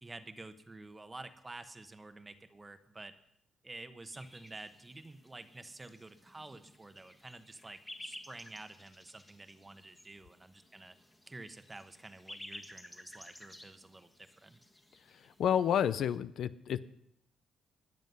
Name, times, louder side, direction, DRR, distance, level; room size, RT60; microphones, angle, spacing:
voice 1, 0.0-3.1 3.6-10.9 11.3-14.6, right 2 dB, 20° right, 10 dB, 1.1 m, -50 dB
sound 1, 4.1-16.2, left 1 dB, 10° left, 1.5 m, -54 dB
voice 2, 15.1-16.8, left 9 dB, 70° left, 15 dB, 0.5 m, -30 dB
20.5 x 7.5 x 5.5 m, 0.76 s
cardioid pair, 90°, 0 cm